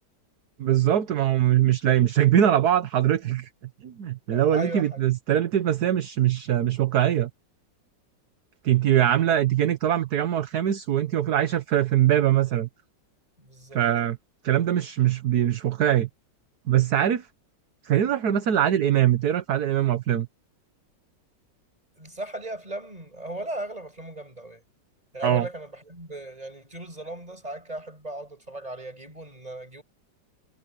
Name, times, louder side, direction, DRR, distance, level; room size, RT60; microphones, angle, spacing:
voice 1, 0.6-3.5 3.8-7.3 8.6-12.7 13.7-14.2 14.4-16.1 16.7-17.3 17.8-20.3 25.2-25.5, right 11 dB, 60° right, 1.5 m, -22 dB
voice 2, 4.3-5.0 13.4-13.8 22.0-24.6 25.1-29.8, right 1 dB, 20° right, 7.0 m, -37 dB
omnidirectional pair, 2.0 m